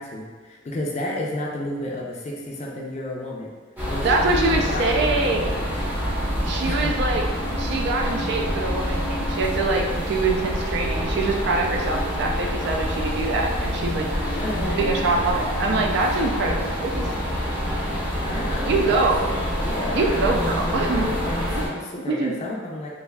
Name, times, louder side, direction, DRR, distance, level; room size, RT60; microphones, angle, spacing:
voice 1, 0.0-3.5 3.8-5.7 6.7-6.9 14.3-15.2 18.2-19.1 19.6-22.9, left 1 dB, 35° left, -2 dB, 0.4 m, -32 dB
sound 1, 3.8-21.7, equal, 10° right, 0.6 m, -26 dB
voice 2, 4.0-5.4 6.4-7.2 7.5-14.0 14.7-17.1 18.6-19.2 19.9-21.1 21.6-21.7 22.1-22.3, right 3 dB, 60° right, 1 dB, 0.3 m, -24 dB
3.3 x 2.5 x 2.3 m, 1.4 s
head